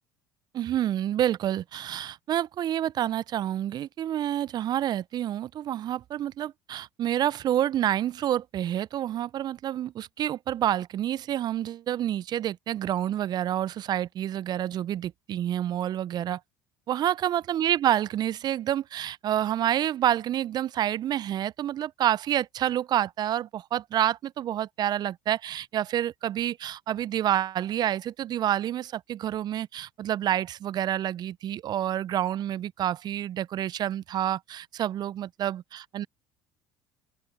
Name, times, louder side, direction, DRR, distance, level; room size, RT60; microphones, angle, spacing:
voice 1, 0.5-16.4 16.9-36.1, right 11 dB, 45° right, 0.6 m, -28 dB
open air
hypercardioid pair, 65°, 10 cm